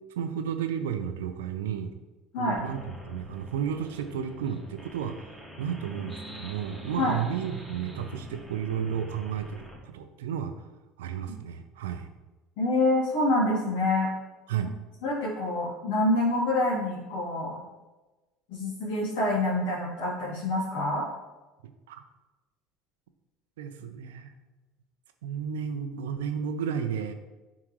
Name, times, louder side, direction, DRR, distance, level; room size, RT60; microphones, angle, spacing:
voice 1, 0.2-1.9 2.4-10.5 11.0-12.1 14.5-14.7 21.6-22.0 23.6-24.3 25.2-27.1, right 8 dB, 85° right, 8 dB, 0.5 m, -33 dB
sound 1, 2.6-9.8, left 1 dB, 5° left, 1.9 m, -45 dB
voice 2, 12.6-14.1 15.0-17.6 18.5-21.0, left 2 dB, 70° left, -8 dB, 2.0 m, -26 dB
9.8 x 3.7 x 3.2 m, 1.1 s
hypercardioid pair, 75°, 0 cm